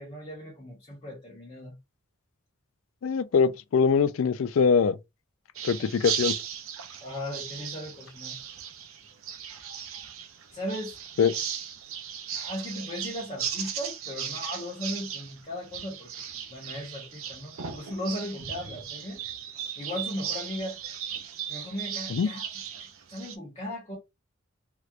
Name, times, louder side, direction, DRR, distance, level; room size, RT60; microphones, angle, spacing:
voice 1, 0.0-1.7 5.8-5.9 7.0-8.3 10.5-11.0 12.3-16.1 16.5-19.2 19.8-20.8 21.5-22.5 22.8-24.0, left 1 dB, 30° left, 1.1 m, -37 dB
voice 2, 3.0-5.0 5.6-6.3 11.2-11.3 22.1-22.3, left 6 dB, 75° left, 0.4 m, -23 dB
sound 1, 5.5-23.3, right 8 dB, 85° right, 0.6 m, -37 dB
3.2 x 2.9 x 2.4 m
head